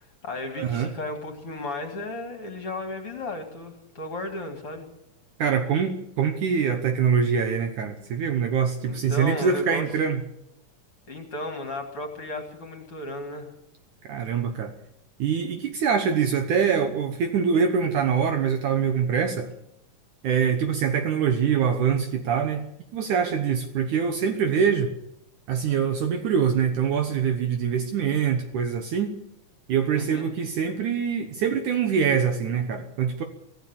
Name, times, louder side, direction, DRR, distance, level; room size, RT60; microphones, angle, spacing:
voice 1, 0.0-4.9 8.9-9.9 11.1-13.5 29.9-30.3, left 2 dB, 45° left, 5 dB, 2.7 m, -34 dB
voice 2, 0.5-0.9 5.4-10.2 14.0-14.7 15.2-19.5 20.2-22.6 22.9-24.9 25.5-29.1 29.7-33.2, right 7 dB, 65° right, 6 dB, 2.4 m, -24 dB
24.0 x 15.5 x 7.2 m, 0.81 s
omnidirectional pair, 4.0 m